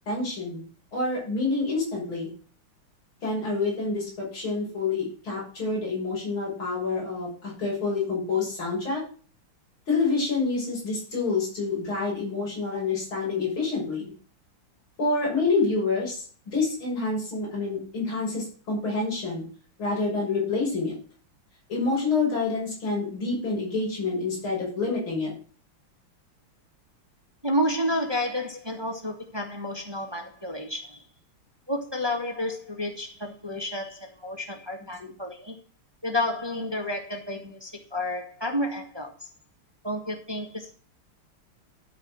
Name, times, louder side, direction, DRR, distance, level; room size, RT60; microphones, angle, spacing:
voice 1, 0.1-0.6 0.9-2.3 3.2-9.0 9.9-14.0 15.0-19.4 19.8-21.0 21.7-25.3 35.0-35.1, left 3 dB, 65° left, -5 dB, 7.5 m, -27 dB
voice 2, 27.4-31.0 31.7-35.6 36.0-39.3 39.8-40.7, left 1 dB, 10° right, 3 dB, 1.8 m, -30 dB
13.5 x 5.1 x 6.4 m, 0.40 s
omnidirectional pair, 2.4 m